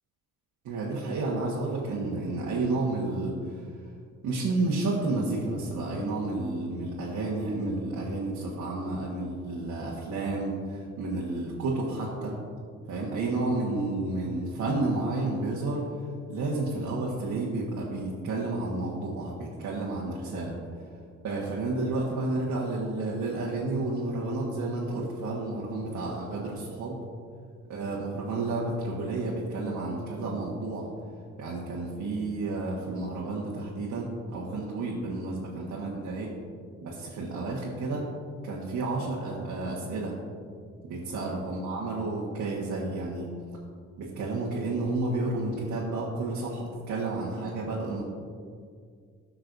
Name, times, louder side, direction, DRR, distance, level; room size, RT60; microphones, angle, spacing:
voice 1, 0.6-3.8 4.2-12.4 12.9-15.9 16.3-20.6 21.2-27.0 27.7-30.9 31.4-36.3 36.8-38.1 38.4-40.1 40.8-43.3 44.0-48.0, right 2 dB, 85° right, -5 dB, 1.6 m, -31 dB
15.5 x 5.8 x 2.7 m, 2.1 s
cardioid pair, 90°, 30 cm